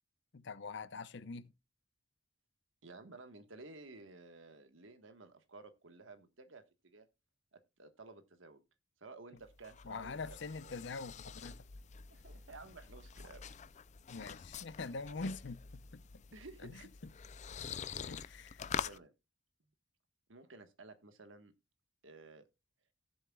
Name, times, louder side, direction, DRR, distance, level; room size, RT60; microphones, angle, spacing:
voice 1, 0.3-1.5 9.8-11.6 14.1-16.0 16.6-16.7 17.9-18.6, left 3 dB, 65° left, 0.7 m, -44 dB
voice 2, 2.8-7.1 7.5-8.6 9.0-10.8 12.1-13.5 16.3-16.9 17.5-18.4 18.8-19.1 19.6-19.7 20.3-21.5 22.0-22.5, right 3 dB, 85° right, 1.4 m, -54 dB
sound 1, 9.4-19.0, left 7 dB, 40° left, 0.4 m, -46 dB
18.0 x 7.3 x 2.3 m
head